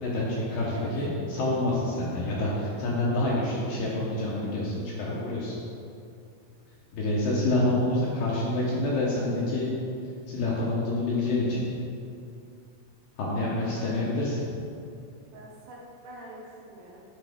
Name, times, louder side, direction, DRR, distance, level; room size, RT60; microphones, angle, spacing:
voice 1, 0.0-5.5 6.9-9.7 10.3-11.7 13.2-14.4, left 2 dB, 70° left, -5 dB, 2.3 m, -27 dB
voice 2, 13.6-14.1 15.3-15.8 16.0-17.0, right 2 dB, 75° right, -3 dB, 2.4 m, -46 dB
9.6 x 5.1 x 3.5 m, 2.5 s
omnidirectional pair, 4.8 m